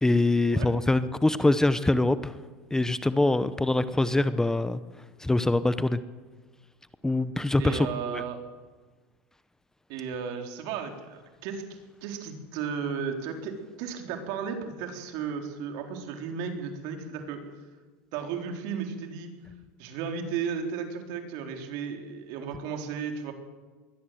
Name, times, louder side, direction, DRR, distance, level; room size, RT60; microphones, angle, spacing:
voice 1, 0.0-2.3 2.7-4.8 5.2-6.0 7.0-8.2, left 2 dB, 5° left, 13 dB, 0.8 m, -24 dB
voice 2, 7.6-8.4 9.9-11.6 12.0-17.4 18.1-19.3 19.8-23.3, right 6 dB, 65° right, 4 dB, 4.0 m, -34 dB
22.0 x 17.0 x 7.8 m, 1.4 s
supercardioid pair, 120°, 7 cm